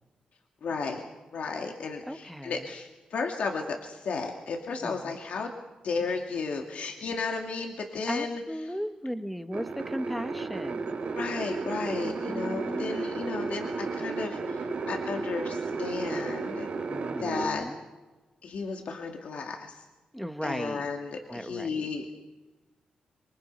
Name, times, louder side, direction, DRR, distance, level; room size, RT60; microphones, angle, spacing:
voice 1, 0.6-1.0 1.3-5.5 5.8-8.4 11.1-16.7 17.2-17.6 18.4-19.8 20.4-22.0, left 4 dB, 70° left, 2 dB, 2.5 m, -34 dB
voice 2, 2.1-2.7 4.8-5.2 8.1-11.0 12.0-13.0 16.9-17.8 20.1-20.9 21.3-21.9, equal, ahead, 8 dB, 1.4 m, -36 dB
sound 1, 9.5-17.5, right 4 dB, 65° right, 3.2 m, -33 dB
27.5 x 23.5 x 5.6 m, 1.2 s
wide cardioid pair, 135°, 2 cm